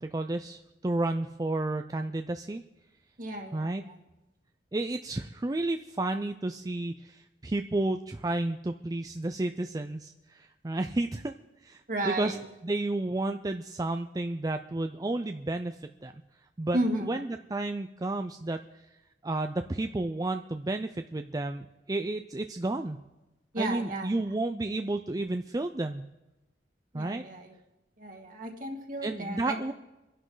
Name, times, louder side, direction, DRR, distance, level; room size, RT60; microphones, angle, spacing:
voice 1, 0.0-2.6 3.5-3.8 4.7-11.3 11.6-12.3 12.6-16.1 16.6-18.9 19.2-23.0 23.6-26.0 26.9-27.2 29.0-29.7, right 2 dB, 20° right, 7 dB, 0.4 m, -32 dB
voice 2, 3.2-4.0 11.9-12.4 16.7-17.2 23.5-24.2 26.9-27.6 28.0-29.7, right 1 dB, 50° right, 2 dB, 2.1 m, -33 dB
26.0 x 11.0 x 3.9 m, 1.0 s
head